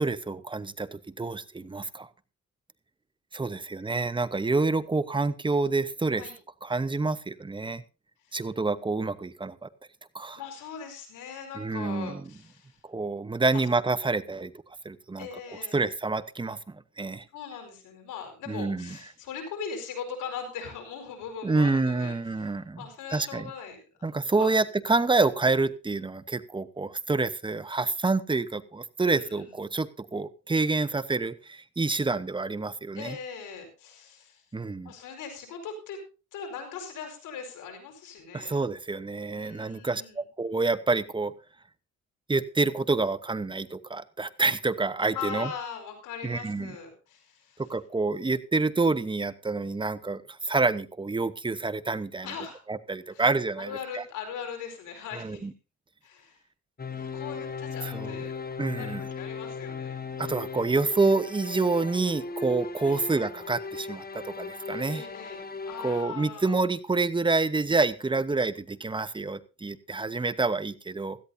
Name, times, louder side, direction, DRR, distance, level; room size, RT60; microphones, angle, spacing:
voice 1, 0.0-2.1 3.3-6.3 6.6-7.8 8.3-9.7 10.1-10.4 11.5-12.2 12.8-14.5 14.8-15.3 15.7-17.2 18.5-19.0 21.4-22.8 23.1-23.5 24.0-33.2 34.5-34.9 38.3-41.3 42.3-45.5 46.2-46.7 47.6-52.3 52.7-54.0 55.1-55.5 57.8-58.2 58.6-59.0 60.2-65.0 65.8-71.2, right 3 dB, 15° right, 14 dB, 1.0 m, -28 dB
voice 2, 10.4-12.8 13.5-13.6 15.2-15.9 17.3-23.8 24.4-24.5 29.0-29.5 32.9-34.4 34.8-36.0 36.3-38.6 39.3-40.2 45.1-47.6 52.2-52.6 53.1-53.2 53.6-55.4 56.0-56.4 56.9-58.4 58.7-60.0 62.8-63.0 64.9-66.6, left 6 dB, 85° left, 4 dB, 4.8 m, -40 dB
sound 1, 56.8-66.0, left 4 dB, 30° left, 1.3 m, -37 dB
17.0 x 13.5 x 2.7 m, 0.31 s
cardioid pair, 90°, 30 cm